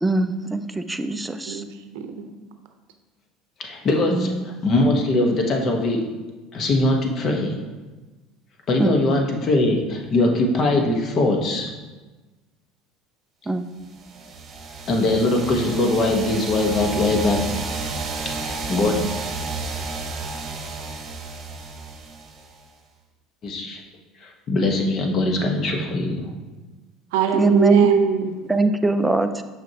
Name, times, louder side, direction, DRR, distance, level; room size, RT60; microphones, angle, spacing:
voice 1, 0.0-1.6 4.1-4.5 8.8-8.9 13.5-13.6 27.4-27.9 28.5-29.4, right 3 dB, 10° right, 8 dB, 0.4 m, -21 dB
voice 2, 1.5-2.3 27.1-28.3, right 7 dB, 85° right, 7 dB, 0.6 m, -22 dB
voice 3, 3.6-6.0 6.5-7.6 8.7-11.7 14.9-17.4 18.4-18.9 23.4-23.8 24.2-26.3, left 2 dB, 45° left, 2 dB, 1.1 m, -21 dB
sound 1, 13.9-22.7, right 3 dB, 40° right, 0.9 m, -31 dB
6.2 x 6.0 x 2.9 m, 1.2 s
supercardioid pair, 110°, 0 cm